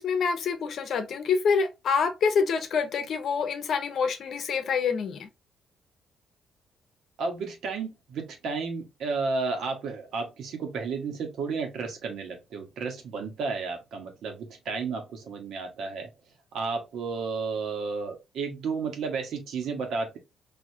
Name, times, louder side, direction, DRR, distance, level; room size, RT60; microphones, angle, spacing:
voice 1, 0.0-5.3, left 5 dB, 65° left, 0.9 m, -26 dB
voice 2, 7.2-16.1 16.5-20.2, right 4 dB, 75° right, 1.3 m, -32 dB
4.7 x 2.8 x 2.7 m
cardioid pair, 85°, 0 cm